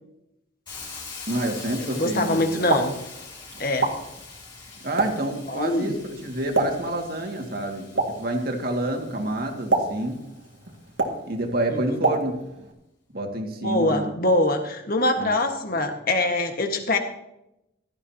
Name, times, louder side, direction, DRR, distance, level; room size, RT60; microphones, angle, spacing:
Hiss, 0.7-10.5, left 4 dB, 25° left, 4.1 m, -43 dB
voice 1, 1.3-2.8 4.8-10.2 11.2-12.3 13.1-14.1 15.2-15.4, right 1 dB, 50° right, 2 dB, 2.1 m, -28 dB
voice 2, 1.8-2.9 3.6-3.9 5.5-5.9 11.7-11.8 13.6-17.0, left 1 dB, 45° left, 4 dB, 1.6 m, -23 dB
Explosion, 2.4-12.7, right 2 dB, 70° right, 2.1 m, -30 dB
16.5 x 13.5 x 2.9 m, 0.86 s
head